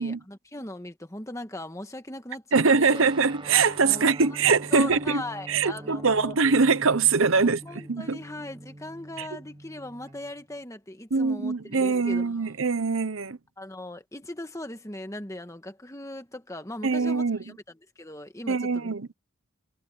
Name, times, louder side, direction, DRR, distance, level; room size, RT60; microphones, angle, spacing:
voice 1, 0.0-3.0 3.8-4.3 4.7-6.4 7.4-12.7 13.6-18.9, left 1 dB, 15° left, 1.5 m, -39 dB
voice 2, 2.5-5.2 5.5-7.6 7.9-8.2 9.2-9.3 11.1-13.4 16.8-17.4 18.5-19.1, right 4 dB, 65° right, 0.9 m, -23 dB
Guitar, 2.9-10.6, right 1 dB, 20° right, 0.9 m, -44 dB
head